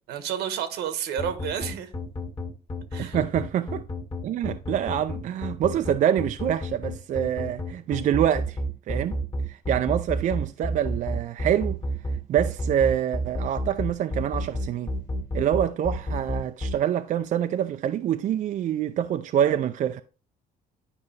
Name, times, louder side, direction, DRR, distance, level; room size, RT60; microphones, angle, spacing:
voice 1, 0.1-1.9 2.9-3.2, right 9 dB, 80° right, 1.2 m, -30 dB
sound 1, 1.2-16.7, equal, 30° left, 1.8 m, -29 dB
voice 2, 3.0-3.8 4.2-8.6 8.9-9.2 9.5-11.8 12.3-14.9 15.3-20.0, right 10 dB, 50° right, 0.4 m, -26 dB
9.7 x 5.3 x 3.3 m
cardioid pair, 110°, 17 cm